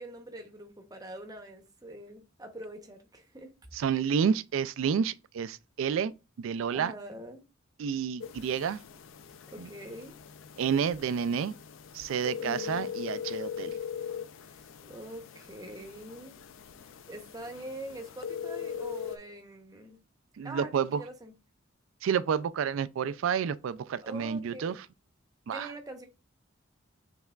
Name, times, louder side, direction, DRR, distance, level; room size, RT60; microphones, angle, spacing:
voice 1, 0.0-3.5 6.7-7.4 9.5-10.1 12.4-12.9 14.4-16.4 17.1-20.0 20.4-21.3 24.0-24.8 25.5-26.1, right 1 dB, 20° right, 0.8 m, -44 dB
voice 2, 3.7-6.1 6.4-6.9 7.8-8.8 9.6-9.7 10.6-11.6 11.9-13.8 20.4-21.0 22.0-24.8 25.5-25.7, right 7 dB, 75° right, 0.3 m, -30 dB
sound 1, 8.2-19.2, left 8 dB, 70° left, 0.4 m, -41 dB
6.4 x 3.4 x 2.3 m
head